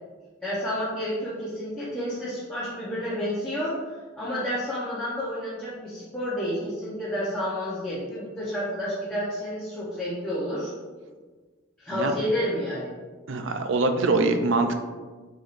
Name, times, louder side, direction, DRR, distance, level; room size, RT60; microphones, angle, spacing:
voice 1, 0.4-10.7 11.8-12.9, equal, 5° left, -10 dB, 0.8 m, -30 dB
voice 2, 13.3-14.7, right 3 dB, 70° right, 7 dB, 0.5 m, -23 dB
4.7 x 4.1 x 2.6 m, 1.4 s
head